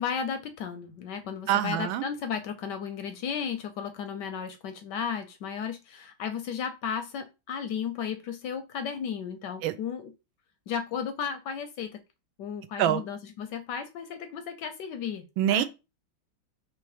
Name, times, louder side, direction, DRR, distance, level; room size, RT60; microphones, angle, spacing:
voice 1, 0.0-10.1 10.7-12.0 12.4-15.6, left 7 dB, 75° left, 1.1 m, -34 dB
voice 2, 1.5-2.0 9.6-9.7 12.8-13.0 15.4-15.6, right 12 dB, 80° right, 1.3 m, -24 dB
3.5 x 3.2 x 4.8 m
omnidirectional pair, 2.2 m